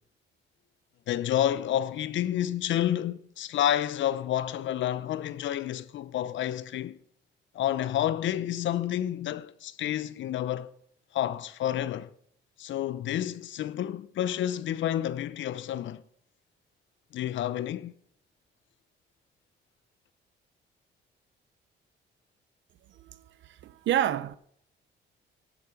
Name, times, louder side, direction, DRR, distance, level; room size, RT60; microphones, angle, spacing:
voice 1, 1.1-7.0 7.5-10.7 11.1-12.1 12.6-16.0 17.1-17.9, left 11 dB, 70° left, 0.7 m, -29 dB
voice 2, 22.9-24.4, right 11 dB, 70° right, 0.7 m, -29 dB
11.0 x 8.5 x 5.9 m
cardioid pair, 90°, 20 cm